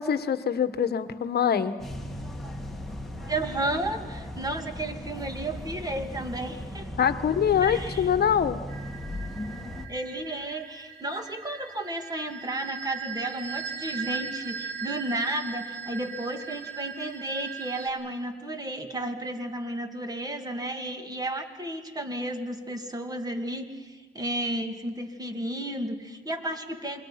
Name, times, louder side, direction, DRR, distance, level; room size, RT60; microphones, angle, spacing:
voice 1, 0.0-1.8 7.0-8.6, left 8 dB, 55° left, 11 dB, 1.3 m, -24 dB
sound 1, 1.8-9.9, equal, ahead, 2.4 m, -37 dB
voice 2, 3.3-6.9 7.6-8.0 9.9-27.0, right 1 dB, 20° right, 6 dB, 2.5 m, -33 dB
sound 2, 8.7-17.9, right 6 dB, 85° right, 2.0 m, -39 dB
27.5 x 23.0 x 5.8 m, 1.3 s
cardioid pair, 90°, 20 cm